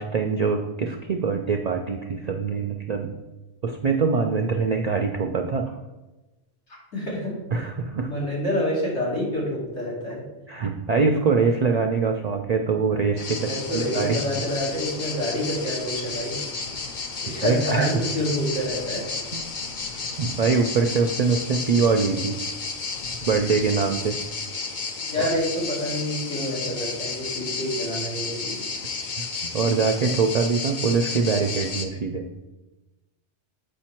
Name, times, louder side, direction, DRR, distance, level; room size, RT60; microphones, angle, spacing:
voice 1, 0.0-3.1 3.6-5.6 7.5-8.1 10.5-14.2 17.3-17.9 19.3-19.4 20.2-22.4 23.2-24.2 25.2-25.3 29.4-32.3, right 5 dB, 60° right, 4 dB, 0.4 m, -23 dB
voice 2, 6.7-7.3 8.1-10.2 13.5-16.4 17.2-19.1 25.0-28.7, left 1 dB, 75° left, -5 dB, 2.8 m, -28 dB
sound 1, 13.2-31.9, left 4 dB, 50° left, 0.7 m, -32 dB
7.3 x 5.1 x 4.4 m, 1.1 s
omnidirectional pair, 1.2 m